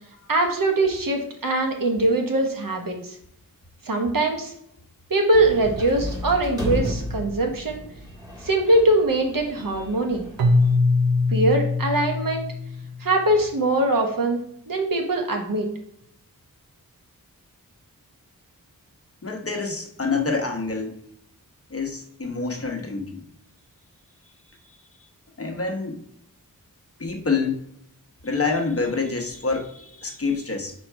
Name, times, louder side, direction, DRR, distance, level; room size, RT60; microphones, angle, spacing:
voice 1, 0.3-3.2 3.8-4.5 5.1-7.8 8.4-10.3 11.3-12.4 13.0-14.4 14.7-15.7, right 1 dB, 70° right, 2 dB, 1.1 m, -22 dB
sound 1, 5.3-10.7, equal, 10° right, 1.5 m, -33 dB
Keyboard (musical), 10.4-13.3, left 3 dB, 90° right, 0.7 m, -22 dB
voice 2, 19.2-21.0 21.7-23.2 25.4-26.0 27.0-27.7 28.2-30.7, left 4 dB, 40° left, 3 dB, 0.9 m, -27 dB
4.6 x 4.4 x 4.5 m, 0.73 s
wide cardioid pair, 95°, 35 cm